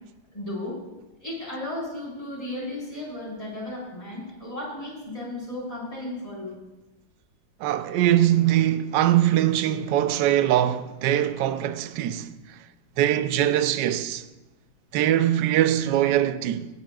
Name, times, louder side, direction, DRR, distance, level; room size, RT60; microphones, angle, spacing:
voice 1, 0.3-0.8 1.2-6.6, left 1 dB, 20° left, 4.4 m, -34 dB
voice 2, 7.6-12.3 13.0-14.2 14.9-16.7, right 12 dB, 75° right, 1.2 m, -22 dB
18.0 x 12.5 x 2.3 m
omnidirectional pair, 2.1 m